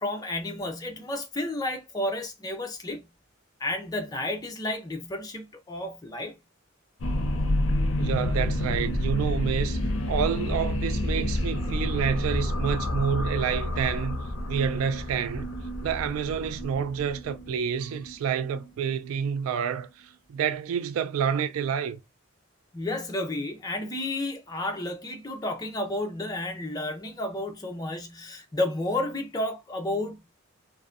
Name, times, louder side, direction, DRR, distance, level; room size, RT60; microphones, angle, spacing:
voice 1, 0.0-3.1 3.6-6.4 22.7-30.3, left 1 dB, 20° left, 0.5 m, -31 dB
sound 1, 7.0-19.9, left 1 dB, 65° left, 0.5 m, -29 dB
voice 2, 8.0-9.8 10.1-14.2 14.5-15.5 15.8-22.0, right 7 dB, 80° right, 0.3 m, -28 dB
2.6 x 2.1 x 2.3 m
head